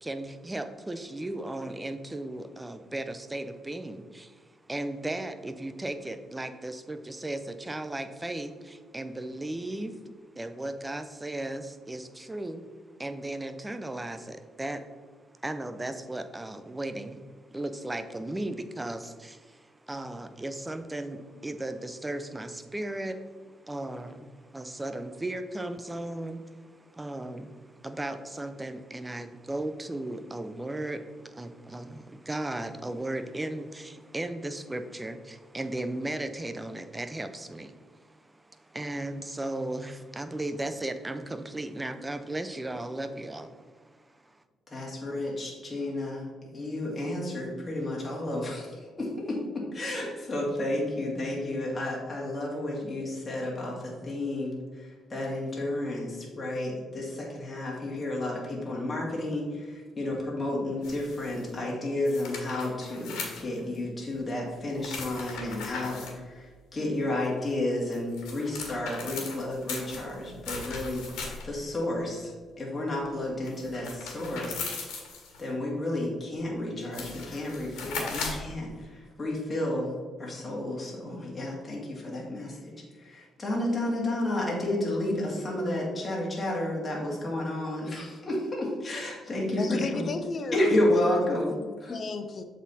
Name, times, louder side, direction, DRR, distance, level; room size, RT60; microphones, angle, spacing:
voice 1, 0.0-10.0 10.4-12.6 13.0-14.9 15.4-17.2 17.5-44.4, right 1 dB, 15° right, 9 dB, 0.5 m, -36 dB
voice 2, 44.7-49.4 49.7-71.1 71.4-72.3 72.6-74.6 75.4-79.9 80.2-90.0 90.5-91.5 91.8-92.0, left 1 dB, 25° left, -4 dB, 1.9 m, -31 dB
sound 1, 60.8-61.4 62.1-63.8 64.8-66.1 67.7-71.6 73.5-75.4 76.4-76.5 76.8-78.5, left 4 dB, 90° left, 1.6 m, -38 dB
voice 3, 89.6-92.4, left 4 dB, 45° left, 9 dB, 0.7 m, -34 dB
7.4 x 4.2 x 4.1 m, 1.5 s
cardioid pair, 90°, 0 cm